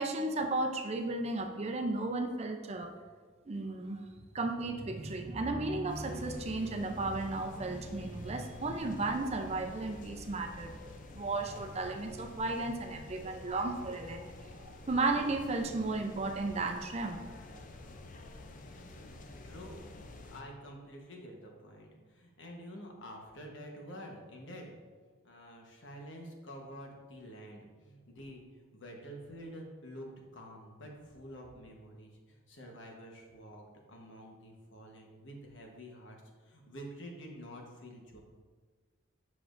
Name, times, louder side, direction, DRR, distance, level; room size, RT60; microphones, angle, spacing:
voice 1, 0.0-2.9 3.5-4.0 4.3-17.2 17.5-17.6, right 2 dB, 35° right, 4 dB, 0.5 m, -34 dB
sound 1, 5.9-20.4, left 2 dB, 45° left, 0.4 m, -49 dB
voice 2, 19.4-24.7 25.2-38.2, equal, 80° left, 1 dB, 1.2 m, -48 dB
7.1 x 5.9 x 2.6 m, 1.5 s
head